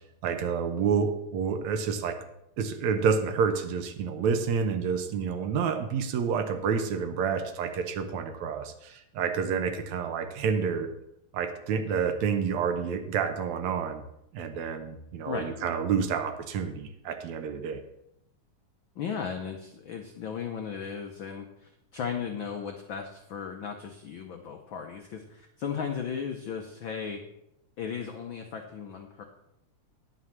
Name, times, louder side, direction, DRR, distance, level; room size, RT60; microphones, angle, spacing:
voice 1, 0.2-2.1 2.6-10.9 11.3-14.0 14.3-17.8, right 6 dB, 70° right, 8 dB, 2.1 m, -29 dB
voice 2, 18.9-27.2 27.8-29.2, left 7 dB, 85° left, 4 dB, 1.0 m, -36 dB
10.5 x 6.4 x 7.2 m, 0.80 s
omnidirectional pair, 3.5 m